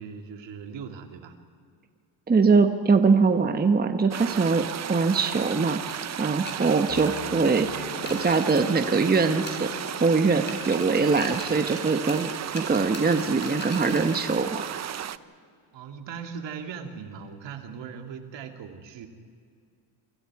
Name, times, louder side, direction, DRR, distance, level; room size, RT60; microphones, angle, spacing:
voice 1, 0.0-1.3 15.7-19.1, right 6 dB, 60° right, 5 dB, 2.5 m, -39 dB
voice 2, 2.3-5.8 6.2-9.7 10.0-12.3 12.5-14.8, right 4 dB, 20° right, 7 dB, 1.2 m, -22 dB
sound 1, 4.1-15.2, right 10 dB, 35° right, 0.6 m, -34 dB
sound 2, 5.9-9.2 9.5-10.1 10.5-14.4, left 2 dB, 20° left, 4.1 m, -42 dB
sound 3, 6.9-12.1, left 5 dB, 70° left, 4.1 m, -42 dB
28.5 x 25.5 x 4.8 m, 2.2 s
cardioid pair, 110°, 48 cm